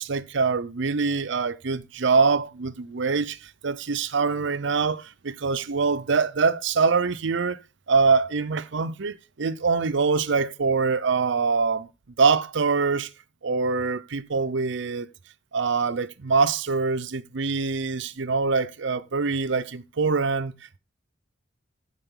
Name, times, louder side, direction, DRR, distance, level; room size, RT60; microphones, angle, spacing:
voice 1, 0.0-7.6 7.9-11.9 12.2-13.1 13.4-15.1 15.5-20.5, right 4 dB, 65° right, 0.6 m, -24 dB
15.0 x 5.6 x 3.8 m
head